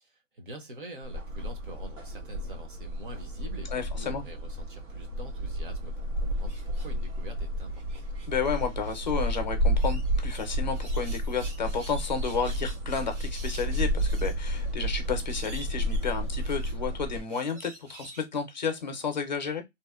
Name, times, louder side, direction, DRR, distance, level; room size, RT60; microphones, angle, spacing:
voice 1, 0.1-8.0, right 1 dB, 45° right, 0.7 m, -45 dB
sound 1, 1.0-17.2, equal, 80° right, 1.3 m, -31 dB
voice 2, 3.7-4.2 8.3-19.6, left 5 dB, 35° left, 0.6 m, -32 dB
sound 2, 6.5-7.2 7.7-9.4 9.8-18.3, right 2 dB, 65° right, 1.1 m, -50 dB
2.7 x 2.0 x 2.3 m
hypercardioid pair, 170°, 38 cm